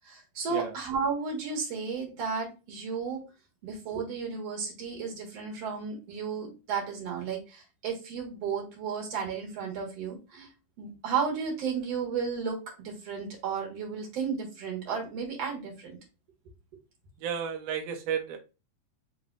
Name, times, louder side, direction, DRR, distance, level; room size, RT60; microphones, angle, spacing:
voice 1, 0.1-3.2 3.6-10.5 10.8-12.6 12.8-16.0, right 6 dB, 55° right, 2.3 m, -33 dB
voice 2, 17.2-18.4, right 7 dB, 85° right, 1.4 m, -32 dB
5.3 x 3.9 x 2.5 m
omnidirectional pair, 3.9 m